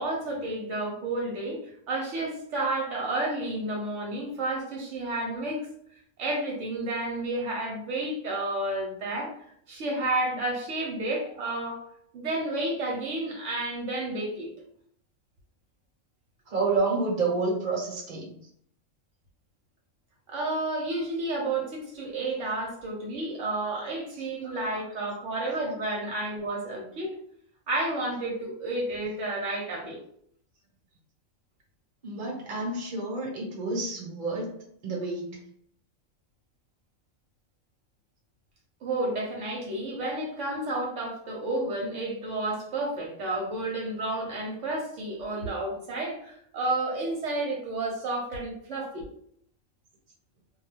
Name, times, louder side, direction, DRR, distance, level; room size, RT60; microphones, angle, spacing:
voice 1, 0.0-1.6 1.9-5.7 6.2-9.3 9.7-11.8 12.1-14.5 20.3-27.2 27.7-30.0 38.8-49.0, right 2 dB, 75° right, -1 dB, 1.0 m, -31 dB
voice 2, 16.5-18.4 24.1-25.1 25.6-25.7 32.0-34.5 34.8-35.5, right 3 dB, 40° right, -2 dB, 1.0 m, -30 dB
2.3 x 2.3 x 3.2 m, 0.67 s
omnidirectional pair, 1.3 m